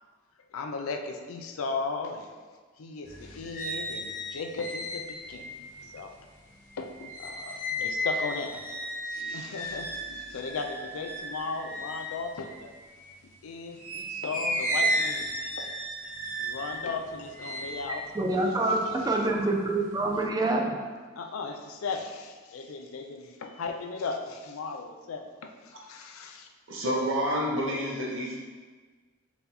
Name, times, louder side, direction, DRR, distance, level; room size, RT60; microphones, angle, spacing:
voice 1, 0.5-2.3 2.8-5.5 5.8-6.1 6.8-8.6 9.1-12.7 13.4-15.7 16.4-18.0 18.3-19.1 21.2-26.5, left 4 dB, 90° left, 5 dB, 0.4 m, -36 dB
sound 1, 3.0-13.2 13.7-19.2 19.6-20.2, equal, 40° left, 1.0 m, -34 dB
voice 2, 18.1-18.8 19.1-20.8, right 2 dB, 20° right, 0 dB, 0.3 m, -26 dB
voice 3, 26.7-28.4, equal, 65° right, -2 dB, 0.9 m, -28 dB
4.5 x 2.7 x 3.9 m, 1.4 s
head